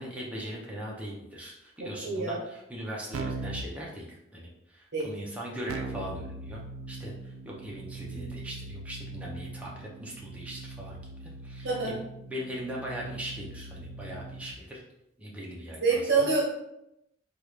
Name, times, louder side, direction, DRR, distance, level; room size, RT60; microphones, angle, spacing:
voice 1, 0.0-6.6 6.9-12.0 12.3-14.8 15.2-16.3, equal, 5° right, -4 dB, 0.6 m, -40 dB
voice 2, 1.8-2.4 4.9-5.1 11.6-11.9 15.8-16.4, right 4 dB, 50° right, -4 dB, 0.9 m, -26 dB
Keyboard (musical), 3.1-3.7 5.7-14.6, right 3 dB, 90° right, 0.3 m, -40 dB
3.5 x 2.4 x 3.1 m, 0.84 s
head